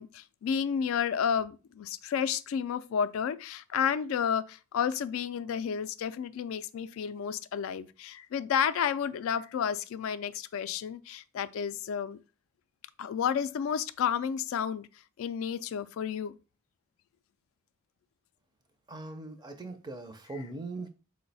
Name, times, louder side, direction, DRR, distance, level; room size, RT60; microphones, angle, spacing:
voice 1, 0.0-12.2 13.0-14.9 15.2-16.3, left 7 dB, 75° left, 0.3 m, -31 dB
voice 2, 18.9-20.9, right 2 dB, 20° right, 0.4 m, -40 dB
4.5 x 2.1 x 3.9 m
head